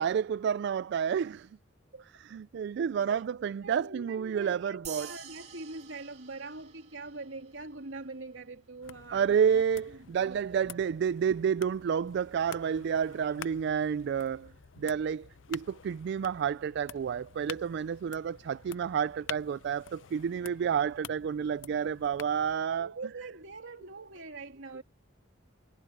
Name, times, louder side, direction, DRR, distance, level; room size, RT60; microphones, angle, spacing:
voice 1, 0.0-1.5 2.2-5.1 9.1-14.5 14.8-22.9, right 7 dB, 60° right, 0.3 m, -30 dB
voice 2, 3.6-9.6 10.2-10.6 22.8-24.8, right 3 dB, 80° right, 2.8 m, -43 dB
sound 1, 4.8-7.6, right 9 dB, 35° right, 2.9 m, -47 dB
sound 2, 8.8-22.6, left 8 dB, 75° left, 0.6 m, -49 dB
head